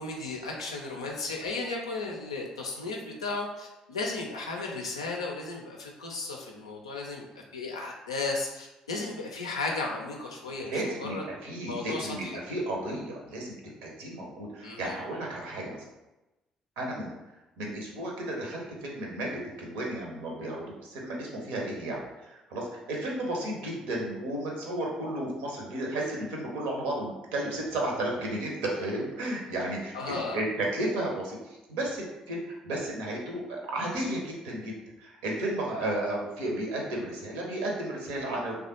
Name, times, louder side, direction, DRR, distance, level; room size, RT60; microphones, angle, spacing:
voice 1, 0.0-7.2 7.5-11.2 11.7-12.4 14.6-15.0 29.9-30.4, left 3 dB, 80° left, 0 dB, 0.4 m, -35 dB
voice 2, 10.7-13.6 13.8-15.8 16.8-17.1 17.6-38.6, right 1 dB, 65° right, -1 dB, 0.7 m, -33 dB
3.2 x 2.3 x 2.8 m, 1.0 s
figure-of-eight pair, 45°, 3 cm